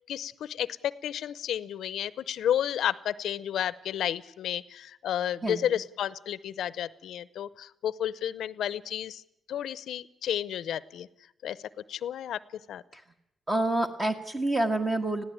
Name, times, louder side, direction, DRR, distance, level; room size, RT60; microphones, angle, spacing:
voice 1, 0.1-9.2 9.5-11.1 11.4-11.6 11.9-12.4 12.7-12.8, left 10 dB, 80° left, 18 dB, 0.7 m, -31 dB
voice 2, 13.5-15.2, right 2 dB, 25° right, 4 dB, 1.5 m, -27 dB
20.5 x 15.5 x 8.7 m, 0.82 s
cardioid pair, 100°, 0 cm